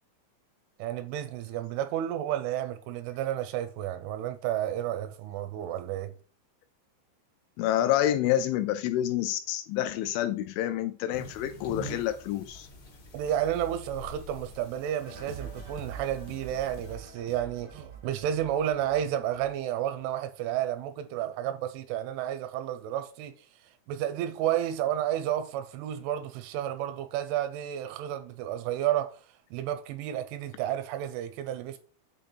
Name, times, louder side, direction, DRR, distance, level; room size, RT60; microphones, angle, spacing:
voice 1, 0.8-6.1 13.1-23.3 23.9-29.2 29.5-31.8, right 11 dB, 85° right, 2.9 m, -31 dB
voice 2, 7.6-12.7, left 12 dB, 85° left, 2.8 m, -28 dB
sound 1, 11.1-17.0, left 1 dB, 65° left, 1.3 m, -45 dB
sound 2, 15.0-20.1, right 5 dB, 65° right, 1.3 m, -45 dB
8.1 x 3.5 x 4.1 m
omnidirectional pair, 5.7 m